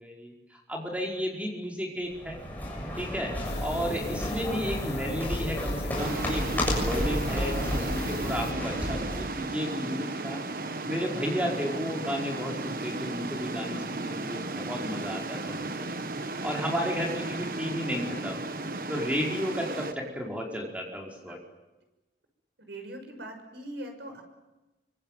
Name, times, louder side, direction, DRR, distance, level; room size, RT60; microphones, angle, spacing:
voice 1, 0.0-2.4 3.0-10.4 10.9-15.9 16.2-18.4 18.9-21.4, equal, 10° right, -1 dB, 5.0 m, -33 dB
sound 1, 2.1-9.3, equal, 10° left, 7.1 m, -32 dB
sound 2, 3.4-8.5, left 3 dB, 75° left, 1.0 m, -39 dB
sound 3, 6.0-19.9, right 2 dB, 50° right, 1.4 m, -34 dB
voice 2, 22.7-24.2, right 1 dB, 90° right, 5 dB, 6.4 m, -41 dB
25.0 x 25.0 x 9.3 m, 1.1 s
head